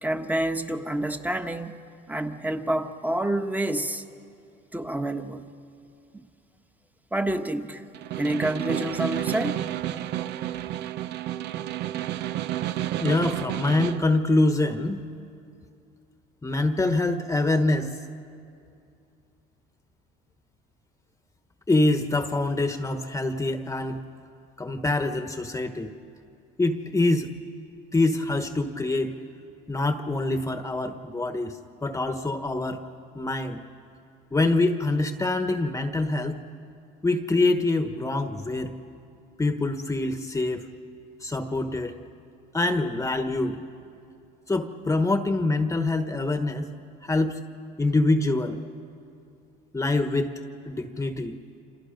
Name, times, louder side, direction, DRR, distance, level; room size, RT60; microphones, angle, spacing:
voice 1, 0.0-1.8 2.1-4.0 4.7-5.5 6.1-6.2 7.1-7.8 8.2-9.6, right 1 dB, 10° right, 7 dB, 1.3 m, -28 dB
Snare drum, 7.9-14.1, right 13 dB, 65° right, 0.7 m, -30 dB
voice 2, 13.0-15.0 16.4-18.0 21.7-24.0 24.6-25.9 26.6-27.3 27.9-29.2 29.7-32.8 33.1-33.6 34.3-36.4 37.0-38.7 39.4-40.6 41.2-41.9 42.5-43.6 44.5-46.7 47.0-47.4 47.8-48.6 49.7-50.3 50.7-51.3, left 2 dB, 15° left, 7 dB, 1.3 m, -25 dB
29.0 x 26.5 x 5.2 m, 2.5 s
supercardioid pair, 95°, 19 cm